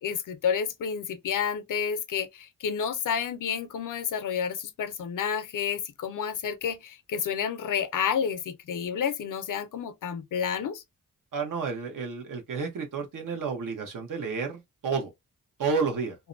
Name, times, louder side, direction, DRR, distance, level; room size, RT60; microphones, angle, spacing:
voice 1, 0.0-10.8, left 7 dB, 65° left, 0.6 m, -30 dB
voice 2, 11.3-15.1 15.6-16.2, right 5 dB, 70° right, 0.9 m, -30 dB
2.6 x 2.1 x 2.5 m
cardioid pair, 65°, 33 cm